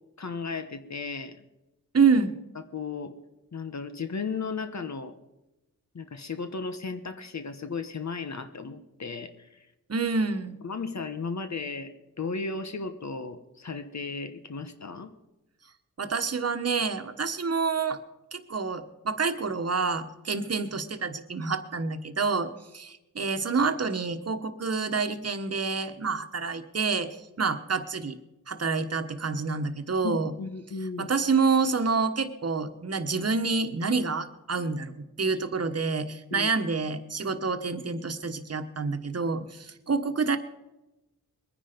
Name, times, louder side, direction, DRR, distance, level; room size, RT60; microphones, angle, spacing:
voice 1, 0.2-1.4 2.7-3.2 3.5-5.1 5.9-9.7 10.6-11.9 12.2-15.1 30.0-31.1 36.3-36.5, left 4 dB, 55° left, 9 dB, 1.1 m, -35 dB
voice 2, 1.9-2.3 9.9-10.6 16.0-18.0 18.3-27.1 27.4-28.2 28.5-30.3 31.0-40.4, right 4 dB, 50° right, 9 dB, 1.3 m, -28 dB
22.0 x 10.0 x 5.2 m, 0.96 s
wide cardioid pair, 70°, 33 cm